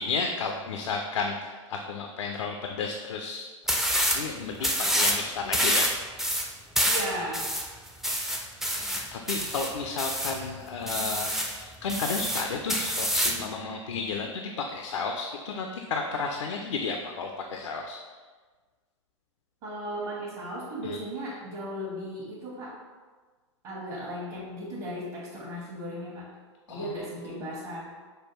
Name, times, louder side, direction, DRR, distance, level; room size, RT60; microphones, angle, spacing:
voice 1, 0.0-3.5 3.7-5.9 8.1-8.3 8.6-18.0 20.8-21.0 26.7-26.9 27.2-27.4, left 4 dB, 70° left, 3 dB, 0.4 m, -33 dB
sound 1, 3.7-4.2 4.6-5.2 5.5-10.4 10.9-11.6 11.9-13.4, equal, ahead, 0.3 m, -27 dB
voice 2, 6.8-7.5 19.6-22.7 23.6-26.3 26.7-27.9, equal, 45° right, -6 dB, 1.1 m, -36 dB
5.4 x 2.2 x 3.1 m, 1.4 s
figure-of-eight pair, 95°, 16 cm